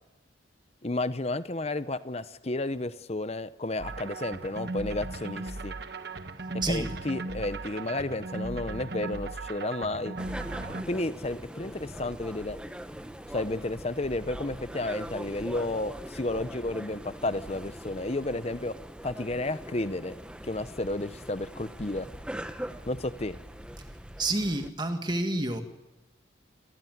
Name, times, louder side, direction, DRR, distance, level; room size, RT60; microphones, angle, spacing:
voice 1, 0.8-5.7 6.7-10.1 10.9-12.6 13.3-18.8 19.0-20.2 20.4-22.1 22.9-23.4, left 2 dB, 35° left, 14 dB, 0.8 m, -32 dB
sound 1, 3.8-10.8, right 2 dB, 55° right, 1.3 m, -37 dB
voice 2, 6.6-6.9 24.2-25.6, right 2 dB, 20° right, 6 dB, 2.0 m, -29 dB
sound 2, 10.2-24.7, equal, 5° right, 1.0 m, -42 dB
28.0 x 16.0 x 9.4 m, 1.1 s
head